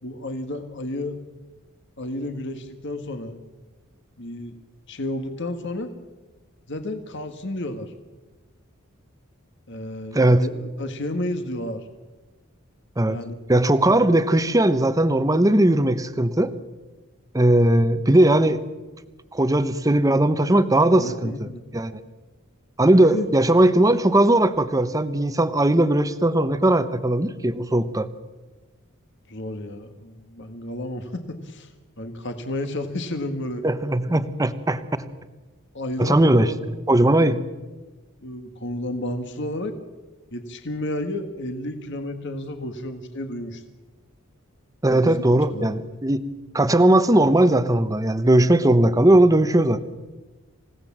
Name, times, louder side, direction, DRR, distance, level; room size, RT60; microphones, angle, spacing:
voice 1, 0.0-1.2 2.0-3.4 4.2-4.5 4.9-5.9 6.7-7.9 9.7-11.9 13.1-13.4 20.9-21.6 23.0-23.3 29.3-31.7 32.0-33.6 35.7-36.5 37.2-37.3 38.2-39.7 40.3-43.6 44.9-45.2 45.5-45.8, left 1 dB, 60° left, 7 dB, 1.7 m, -31 dB
voice 2, 10.1-10.5 13.0-13.2 13.5-16.5 17.3-18.6 19.3-21.5 21.7-22.0 22.8-28.1 33.6-35.1 36.0-36.5 36.9-37.4 44.8-46.2 46.5-49.8, right 1 dB, 15° right, 11 dB, 1.0 m, -18 dB
28.0 x 17.0 x 7.4 m, 1.2 s
head